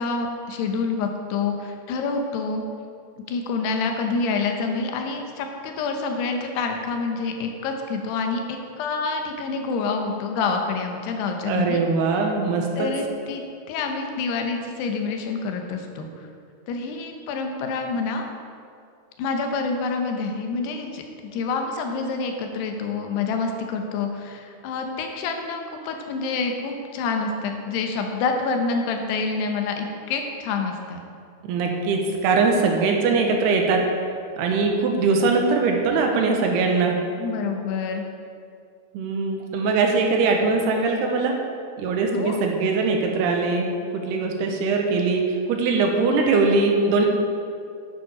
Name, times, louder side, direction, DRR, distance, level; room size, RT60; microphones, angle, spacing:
voice 1, 0.0-2.6 3.3-11.8 12.8-16.3 16.7-18.3 19.2-31.0 37.2-38.1 42.1-42.4, left 4 dB, 85° left, 3 dB, 3.1 m, -27 dB
voice 2, 11.5-12.9 31.4-33.8 34.4-36.9 38.9-41.3 41.8-47.1, right 4 dB, 80° right, 2 dB, 3.1 m, -21 dB
10.5 x 9.2 x 5.0 m, 2.3 s
omnidirectional pair, 4.7 m